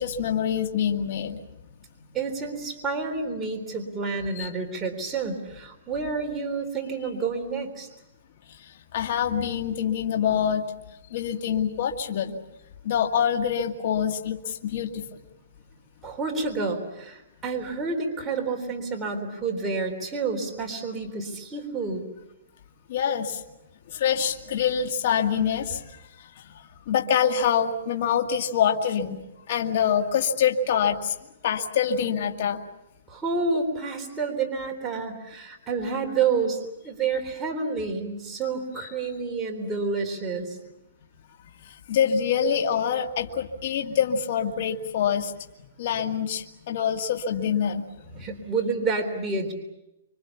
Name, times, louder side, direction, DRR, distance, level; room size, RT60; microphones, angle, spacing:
voice 1, 0.0-1.4 4.4-4.5 8.5-10.7 11.1-12.4 12.8-15.1 22.9-23.4 23.9-31.1 31.4-32.6 41.6-45.3 45.8-47.8, left 8 dB, 50° left, 4 dB, 2.0 m, -25 dB
voice 2, 2.1-7.9 16.0-22.0 33.1-40.6 48.1-49.5, right 4 dB, 10° right, 1 dB, 3.7 m, -29 dB
27.0 x 24.5 x 7.2 m, 0.91 s
hypercardioid pair, 160°, 0 cm